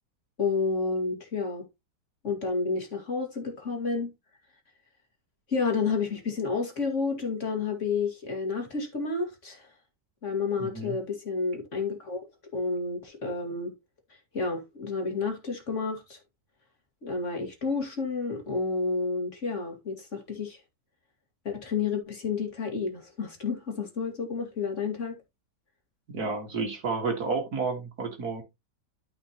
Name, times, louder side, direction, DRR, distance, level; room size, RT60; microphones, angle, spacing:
voice 1, 0.4-1.7 2.2-4.1 5.5-9.7 10.2-12.3 12.5-13.7 14.1-16.2 17.0-20.6 21.4-25.2, left 4 dB, 45° left, 2.4 m, -30 dB
voice 2, 10.6-11.0 26.1-28.4, right 4 dB, 60° right, 2.4 m, -31 dB
12.5 x 5.4 x 3.0 m
omnidirectional pair, 1.9 m